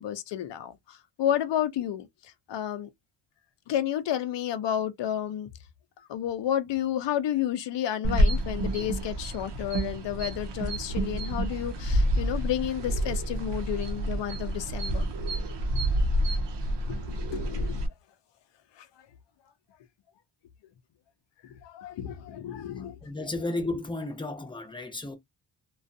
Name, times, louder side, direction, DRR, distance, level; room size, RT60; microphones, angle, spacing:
voice 1, 0.0-2.9 3.7-5.5 6.0-15.1 15.7-15.9 16.8-17.9 18.8-18.9 21.4-23.0, left 11 dB, 75° left, 0.6 m, -31 dB
sound 1, 8.0-17.9, right 1 dB, 80° right, 0.7 m, -28 dB
voice 2, 23.0-25.2, left 2 dB, 10° left, 0.6 m, -33 dB
2.4 x 2.3 x 2.5 m
wide cardioid pair, 120°, 42 cm